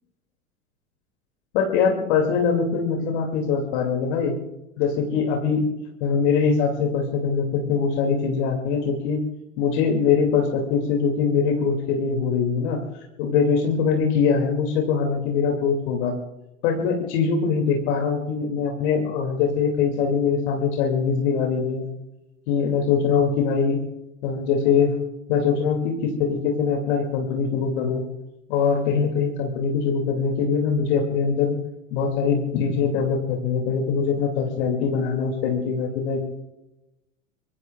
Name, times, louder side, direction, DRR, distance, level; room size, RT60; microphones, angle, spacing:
voice 1, 1.5-4.4 4.8-5.7 6.0-9.2 9.6-12.8 13.2-16.2 16.6-21.8 22.5-23.8 24.2-25.0 25.3-28.0 28.5-31.6 31.9-36.2, left 6 dB, 55° left, 2 dB, 2.6 m, -22 dB
24.0 x 23.5 x 2.4 m, 0.95 s
figure-of-eight pair, 90°, 39 cm